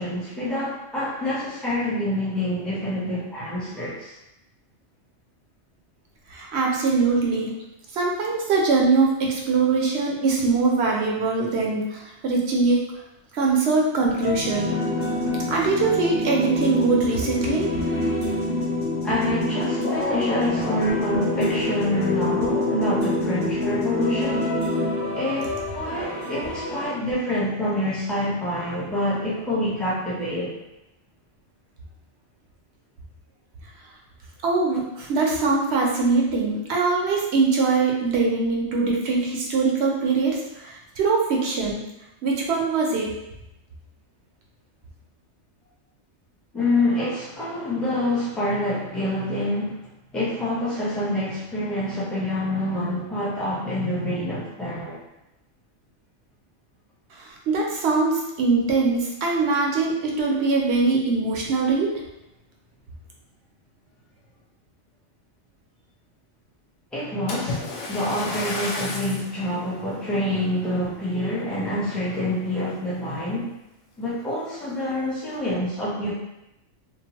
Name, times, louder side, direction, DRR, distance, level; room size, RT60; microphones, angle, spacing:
voice 1, 0.0-4.1 19.0-24.5 25.1-30.5 46.5-49.8 50.1-55.0 66.9-67.6 67.9-73.5 74.0-76.1, left 1 dB, ahead, -8 dB, 0.5 m, -26 dB
voice 2, 6.3-7.5 7.9-12.8 13.3-14.8 15.5-17.7 26.0-26.1 34.4-41.9 42.2-43.1 57.1-61.9, right 4 dB, 65° right, -1 dB, 0.8 m, -22 dB
sound 1, 14.2-26.9, left 2 dB, 45° left, 1.2 m, -26 dB
Splash splatter, 67.3-69.3 70.0-70.2 70.8-70.9, left 2 dB, 65° left, 0.8 m, -31 dB
2.8 x 2.0 x 2.8 m, 0.89 s
omnidirectional pair, 1.3 m